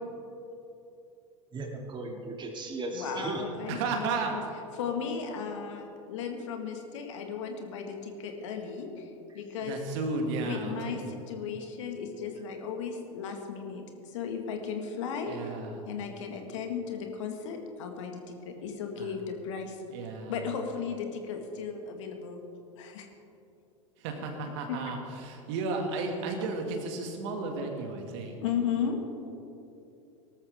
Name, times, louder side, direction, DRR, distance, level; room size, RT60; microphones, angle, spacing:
voice 1, 1.5-3.4, right 3 dB, 30° right, 1 dB, 2.5 m, -36 dB
voice 2, 2.9-4.4 4.7-9.7 10.4-15.4 15.8-19.8 20.3-22.4 22.8-23.1 24.7-24.8 28.4-29.0, left 6 dB, 70° left, 4 dB, 1.8 m, -35 dB
voice 3, 3.7-4.4 9.6-11.0 15.3-15.8 19.0-19.1 19.9-20.4 24.0-25.0 25.2-28.4, right 3 dB, 60° right, 3 dB, 2.2 m, -33 dB
18.5 x 13.0 x 3.6 m, 2.8 s
hypercardioid pair, 85°, 17 cm